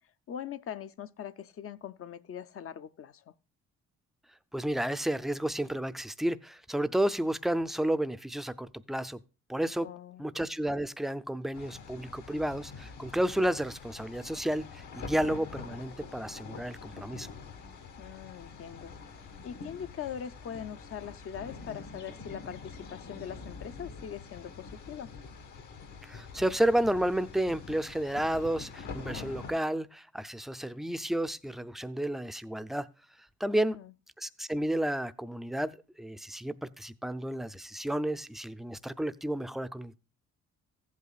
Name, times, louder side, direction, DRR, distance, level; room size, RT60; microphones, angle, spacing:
voice 1, 0.3-3.3 9.8-10.2 18.0-25.1 33.5-33.9, left 8 dB, 50° left, 0.6 m, -42 dB
voice 2, 4.5-9.2 9.5-9.9 10.2-17.3 26.0-32.9 33.4-33.8 34.2-40.0, right 1 dB, ahead, 0.4 m, -31 dB
sound 1, 11.5-29.5, left 5 dB, 80° left, 1.9 m, -45 dB
14.5 x 8.3 x 2.4 m
cardioid pair, 90°, 30 cm